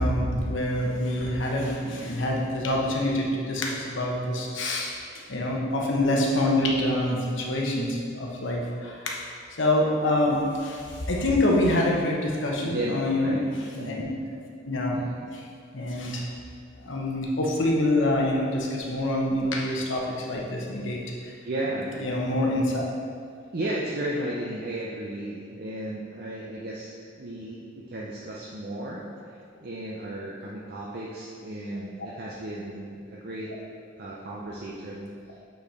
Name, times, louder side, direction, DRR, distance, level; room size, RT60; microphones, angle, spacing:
voice 1, 0.0-4.9 5.3-9.2 9.6-13.4 13.7-14.0 14.6-15.0 15.3-15.4 15.7-16.2 16.8-21.4 22.0-22.8 32.0-32.1, left 1 dB, 70° left, -2 dB, 1.0 m, -26 dB
voice 2, 12.6-13.4 13.7-14.1 21.4-22.0 23.5-26.9 27.2-33.5 34.0-35.1, right 1 dB, 50° right, -4 dB, 0.6 m, -34 dB
8.2 x 4.4 x 3.4 m, 2.2 s
head